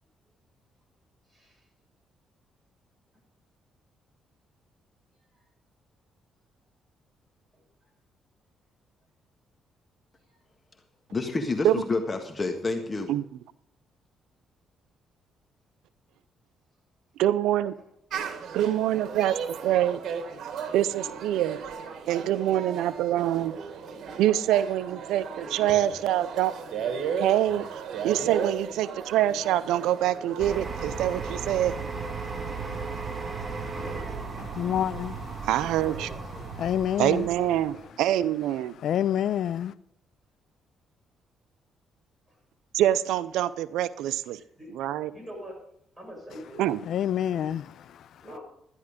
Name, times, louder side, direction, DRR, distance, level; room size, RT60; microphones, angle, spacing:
voice 1, 11.1-13.1, left 3 dB, 30° left, 1.5 m, -29 dB
voice 2, 17.2-17.7 18.5-19.3 19.6-20.0 20.7-21.6 22.1-23.6 24.2-26.5 27.2-27.7 28.0-31.7 35.4-36.1 37.0-38.7 42.7-44.4 44.8-45.1 46.6-46.8, right 12 dB, 90° right, 0.5 m, -25 dB
sound 1, 18.1-30.4, right 7 dB, 70° right, 1.8 m, -36 dB
voice 3, 23.9-24.2 25.4-25.8 28.2-28.3 33.7-34.2 35.7-36.5 37.7-37.8 44.3-44.7 45.1-45.6 46.0-46.6 48.2-48.4, equal, 5° right, 7.0 m, -44 dB
sound 2, 30.4-37.8, right 4 dB, 35° right, 1.9 m, -35 dB
voice 4, 34.4-35.5 36.6-37.3 38.8-39.7 46.8-48.2, left 10 dB, 70° left, 0.4 m, -28 dB
13.0 x 10.5 x 5.1 m
cardioid pair, 90°, 0 cm